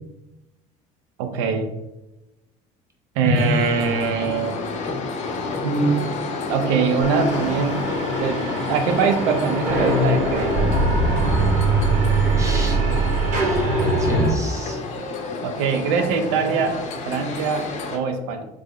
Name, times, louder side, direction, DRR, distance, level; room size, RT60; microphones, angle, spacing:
voice 1, 1.2-1.7 3.2-4.6 5.6-5.9 6.5-7.8 8.2-10.7 15.4-16.8 17.1-18.5, right 5 dB, 85° right, 6 dB, 0.5 m, -23 dB
voice 2, 3.2-3.6 12.3-12.8 13.3-14.8, left 1 dB, 20° right, 0 dB, 0.9 m, -26 dB
sound 1, 3.3-18.0, left 3 dB, 45° left, 0.6 m, -30 dB
sound 2, 7.0-14.3, right 2 dB, 50° right, 1.1 m, -22 dB
3.3 x 2.0 x 3.5 m, 0.96 s
supercardioid pair, 100°, 17 cm